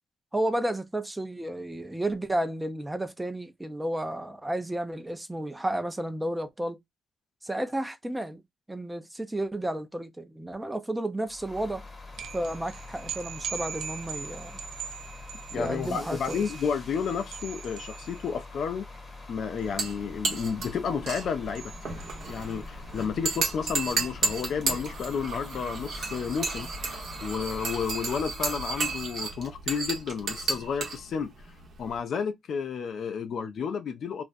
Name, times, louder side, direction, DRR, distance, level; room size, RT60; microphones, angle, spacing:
voice 1, 0.3-6.8 7.4-8.4 8.7-11.8 12.3-14.6 15.5-16.5, right 1 dB, 15° right, 0.5 m, -32 dB
sound 1, 11.2-28.3, left 3 dB, 35° left, 0.9 m, -45 dB
sound 2, 12.1-22.8, right 7 dB, 85° right, 0.4 m, -42 dB
voice 2, 15.5-18.9 19.3-21.7 22.3-26.7 27.2-31.3 31.8-34.2, left 6 dB, 70° left, 0.4 m, -31 dB
sound 3, 19.6-32.0, right 4 dB, 65° right, 0.8 m, -33 dB
2.4 x 2.1 x 2.5 m
cardioid pair, 70°, 0 cm